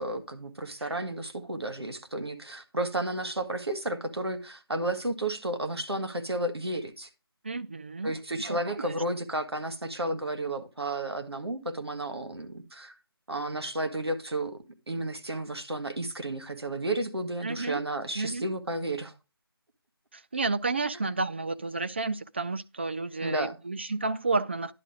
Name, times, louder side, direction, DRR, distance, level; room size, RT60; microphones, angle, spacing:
voice 1, 0.0-7.1 8.0-12.9 13.3-19.1 23.2-23.6, right 1 dB, 90° right, 1.9 m, -32 dB
voice 2, 7.4-8.2 8.4-8.9 17.4-17.8 18.2-18.5 20.1-24.7, right 3 dB, 25° right, 0.4 m, -31 dB
11.0 x 4.5 x 5.1 m
figure-of-eight pair, 165°, 13 cm